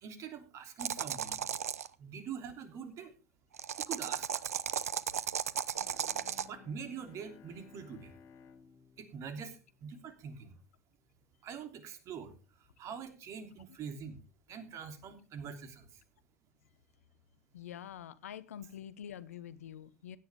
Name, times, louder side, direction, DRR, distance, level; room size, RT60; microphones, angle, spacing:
voice 1, 0.0-1.5 2.0-3.1 3.8-4.4 6.5-8.1 9.0-10.6 11.4-14.2 14.5-16.0, right 6 dB, 40° right, 8 dB, 3.1 m, -44 dB
sound 1, 0.8-1.9 3.5-6.5, right 9 dB, 75° right, 0.7 m, -35 dB
Bowed string instrument, 5.7-10.6, left 7 dB, 40° left, 1.9 m, -59 dB
voice 2, 17.5-20.2, left 10 dB, 70° left, 17 dB, 1.0 m, -46 dB
16.5 x 10.5 x 3.5 m, 0.32 s
figure-of-eight pair, 90°, 8 cm